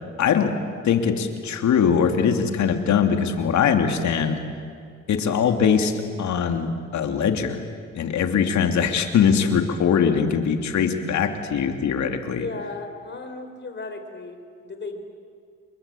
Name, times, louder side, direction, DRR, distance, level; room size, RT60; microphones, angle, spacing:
voice 1, 0.2-0.5 0.8-4.4 5.1-7.6 7.9-12.5, left 7 dB, 70° left, 6 dB, 2.8 m, -21 dB
voice 2, 12.3-15.0, left 3 dB, 35° left, 7 dB, 4.4 m, -35 dB
28.5 x 22.5 x 8.6 m, 2.2 s
cardioid pair, 90°, 30 cm